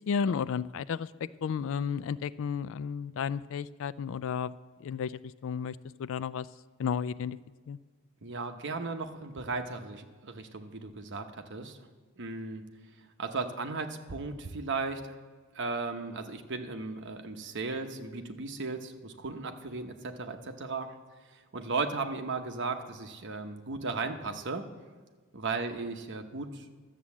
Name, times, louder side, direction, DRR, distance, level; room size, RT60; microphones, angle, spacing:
voice 1, 0.1-1.1 1.4-6.5 6.8-7.4 7.7-7.8, left 6 dB, 60° left, 18 dB, 0.3 m, -33 dB
voice 2, 8.2-11.8 12.2-12.6 13.2-15.2 15.5-20.9 21.5-24.6 25.3-26.6, right 3 dB, 55° right, 5 dB, 0.9 m, -36 dB
12.5 x 7.6 x 7.1 m, 1.4 s
head